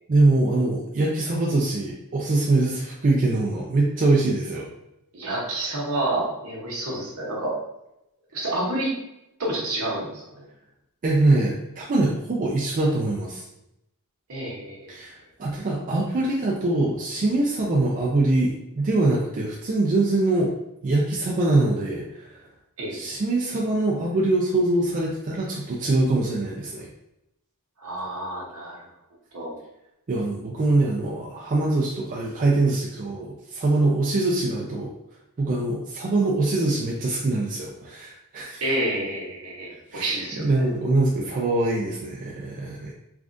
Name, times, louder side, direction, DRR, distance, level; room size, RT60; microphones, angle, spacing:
voice 1, 0.1-4.7 11.0-13.5 14.9-15.1 15.4-20.5 20.8-22.4 22.9-26.9 30.1-34.9 35.4-38.6 39.9-40.1 40.4-42.9, right 2 dB, 35° right, -3 dB, 0.4 m, -23 dB
voice 2, 5.1-7.5 8.3-8.9 9.4-10.2 14.3-14.9 22.8-23.1 27.8-28.8 29.3-29.5 38.6-40.6, right 1 dB, 70° right, -3 dB, 1.0 m, -29 dB
3.4 x 2.4 x 2.5 m, 0.87 s
head